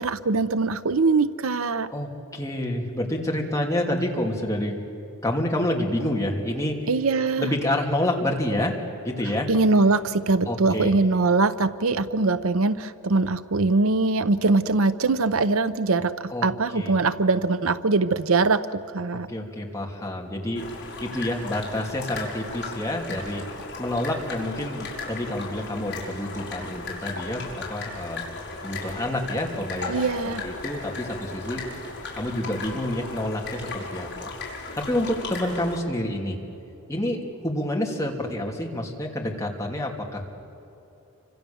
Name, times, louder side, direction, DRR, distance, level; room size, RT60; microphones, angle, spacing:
voice 1, 0.0-1.9 6.9-7.5 9.5-19.3 29.9-30.4, right 3 dB, 70° right, 13 dB, 0.7 m, -22 dB
voice 2, 1.9-4.8 5.2-6.8 7.4-8.8 9.0-9.5 10.5-10.9 16.3-16.5 16.7-16.9 19.3-20.7 21.0-23.4 23.8-28.2 28.6-31.6 32.2-34.3 34.8-36.4 36.9-40.2, left 1 dB, 15° left, -1 dB, 2.9 m, -28 dB
sound 1, 20.5-35.8, left 3 dB, 55° left, 5.1 m, -36 dB
28.5 x 25.5 x 7.1 m, 2.8 s
head